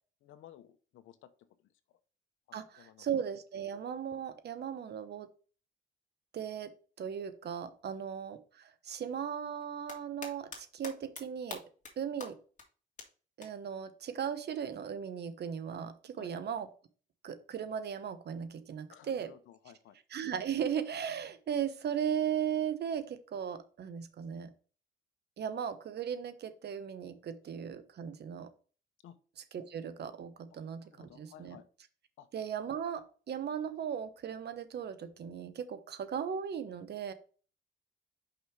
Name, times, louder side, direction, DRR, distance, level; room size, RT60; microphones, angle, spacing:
voice 1, 0.2-1.3 1.6-1.7 2.5-3.1 16.2-16.3 18.9-20.0 29.0-29.2 30.9-31.7 32.2-32.3, left 10 dB, 80° left, 11 dB, 0.9 m, -55 dB
voice 2, 2.5-5.3 6.3-6.7 7.0-11.6 12.0-12.4 13.4-16.7 17.2-19.3 20.1-24.5 25.4-28.5 29.5-31.6 32.3-37.1, right 8 dB, 55° right, 11 dB, 1.0 m, -37 dB
sound 1, 9.6-10.6 10.8-11.2 11.5-11.9 12.2-12.3 12.6-12.7 13.0-13.1 13.4-13.5 15.0-15.1, left 4 dB, 40° left, 2.2 m, -43 dB
5.9 x 5.4 x 3.3 m, 0.38 s
cardioid pair, 90°, 20 cm